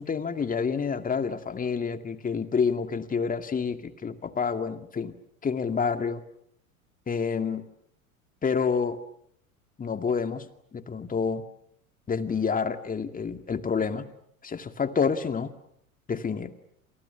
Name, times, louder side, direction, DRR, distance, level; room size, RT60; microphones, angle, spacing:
voice 1, 0.0-5.1 5.4-6.2 7.1-7.7 8.4-9.0 9.8-10.4 10.7-11.4 12.1-14.1 14.4-15.5 16.1-16.5, left 5 dB, 20° left, 9 dB, 2.2 m, -28 dB
29.0 x 28.0 x 7.1 m, 0.67 s
hypercardioid pair, 90°, 42 cm